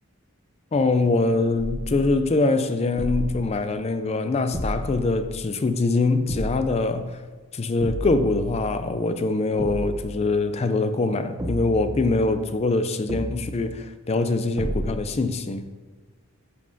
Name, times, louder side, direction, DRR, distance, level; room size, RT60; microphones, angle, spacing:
voice 1, 0.7-7.2 7.5-15.7, left 3 dB, 30° left, 0.3 m, -23 dB
sound 1, 1.6-2.3 3.0-3.6 4.5-5.6 6.3-6.9 7.8-8.9 9.6-10.2 11.4-12.5 13.1-13.7 14.6-15.2, right 1 dB, 20° right, 0.6 m, -32 dB
9.8 x 5.5 x 2.7 m
head